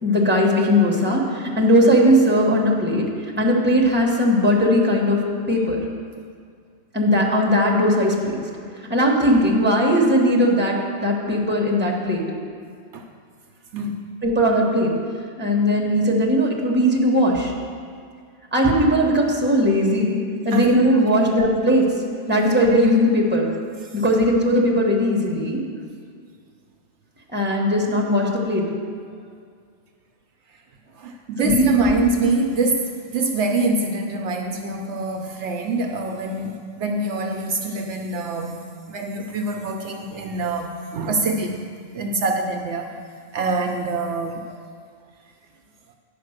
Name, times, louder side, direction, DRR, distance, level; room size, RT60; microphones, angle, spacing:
voice 1, 0.0-3.0 3.4-5.2 5.5-5.8 6.9-8.3 8.9-12.2 14.2-14.9 15.4-17.5 18.5-20.2 20.4-21.9 22.3-23.5 23.9-25.6 27.3-28.6 31.4-31.9, equal, 10° right, -1 dB, 1.2 m, -18 dB
voice 2, 13.7-14.1 20.5-21.3 23.8-24.0 31.0-38.6 38.9-42.9 43.3-44.4, right 3 dB, 70° right, 4 dB, 0.9 m, -25 dB
10.0 x 5.2 x 6.4 m, 2.1 s
omnidirectional pair, 1.3 m